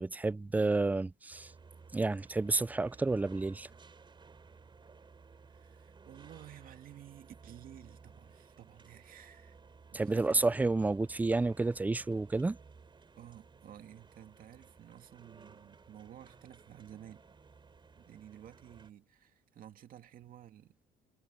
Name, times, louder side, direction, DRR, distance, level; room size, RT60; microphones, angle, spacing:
voice 1, 0.0-1.5 1.9-3.7 9.9-12.6, right 3 dB, 10° right, 0.3 m, -30 dB
sound 1, 1.3-18.9, right 5 dB, 30° right, 4.6 m, -57 dB
voice 2, 5.5-9.6 9.9-10.5 13.1-17.4 17.9-20.8, right 11 dB, 55° right, 2.0 m, -53 dB
cardioid pair, 110°, 17 cm